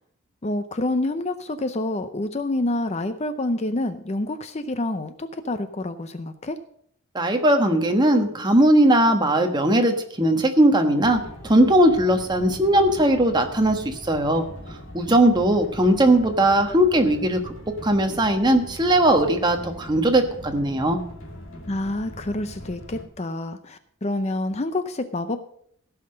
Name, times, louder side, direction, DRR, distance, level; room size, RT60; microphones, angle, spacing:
voice 1, 0.4-6.6 21.7-25.4, left 2 dB, 30° left, 10 dB, 0.6 m, -27 dB
voice 2, 7.1-14.4 14.9-17.5 17.8-21.0, right 1 dB, 20° right, 5 dB, 1.3 m, -19 dB
sound 1, 11.0-23.0, equal, 65° left, 2.4 m, -41 dB
16.0 x 5.8 x 6.5 m, 0.66 s
head